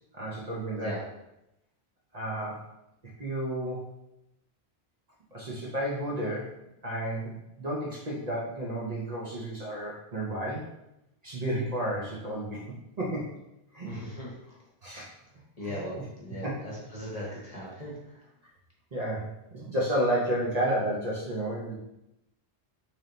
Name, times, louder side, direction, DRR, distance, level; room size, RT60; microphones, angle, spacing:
voice 1, 0.1-0.9 2.1-2.6 3.2-3.8 5.3-6.6 6.8-10.7 11.2-12.6 13.0-13.3 13.7-14.0 14.8-15.1 15.6-16.0 16.4-16.7 18.9-21.8, right 1 dB, 40° right, -5 dB, 0.8 m, -31 dB
voice 2, 13.8-14.3 15.6-18.2, equal, 35° left, -4 dB, 0.9 m, -38 dB
3.3 x 2.8 x 3.8 m, 0.88 s
omnidirectional pair, 1.1 m